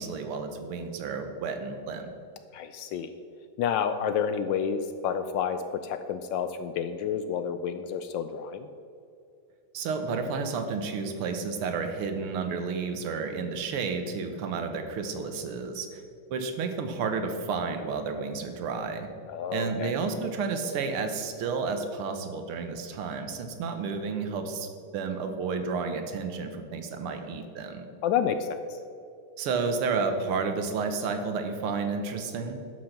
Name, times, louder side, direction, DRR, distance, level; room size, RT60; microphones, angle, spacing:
voice 1, 0.0-2.1 9.7-16.0 16.3-19.1 19.5-27.9 29.4-32.6, right 4 dB, 85° right, 7 dB, 1.9 m, -31 dB
voice 2, 2.5-3.1 3.6-8.7 19.3-19.9 28.0-28.6, left 7 dB, 75° left, 10 dB, 1.1 m, -29 dB
11.5 x 6.2 x 5.9 m, 2.5 s
omnidirectional pair, 2.4 m